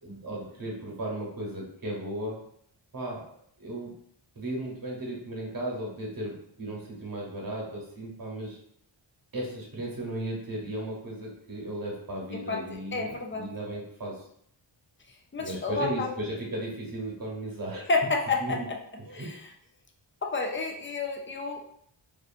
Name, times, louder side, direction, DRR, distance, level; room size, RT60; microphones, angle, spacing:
voice 1, 0.0-2.4 2.9-3.3 3.6-3.9 4.3-8.6 9.3-14.2 15.4-17.9 18.4-18.7 19.0-19.3, right 1 dB, 45° right, -2 dB, 1.0 m, -35 dB
voice 2, 12.5-13.4 15.3-16.1 17.9-18.6 19.1-19.3 20.2-21.6, left 3 dB, 25° left, 3 dB, 0.3 m, -29 dB
2.5 x 2.4 x 2.5 m, 0.69 s
wide cardioid pair, 75°, 49 cm